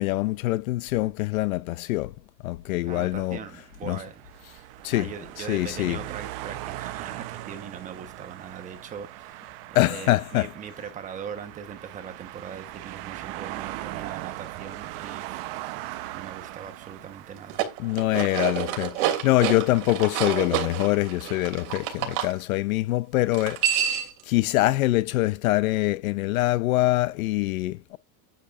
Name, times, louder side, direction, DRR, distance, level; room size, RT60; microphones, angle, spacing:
voice 1, 0.0-2.1 2.4-3.4 3.9-4.0 4.8-5.1 5.4-6.0 9.7-10.5 17.8-28.0, left 18 dB, 60° left, 0.6 m, -24 dB
voice 2, 2.8-4.2 4.5-15.9 16.1-17.6, right 7 dB, 15° right, 1.2 m, -41 dB
sound 1, 3.3-18.7, right 16 dB, 35° right, 0.9 m, -39 dB
sound 2, 17.4-22.3 23.3-24.2, right 10 dB, 60° right, 3.1 m, -28 dB
9.8 x 9.3 x 2.6 m
supercardioid pair, 175°, 48 cm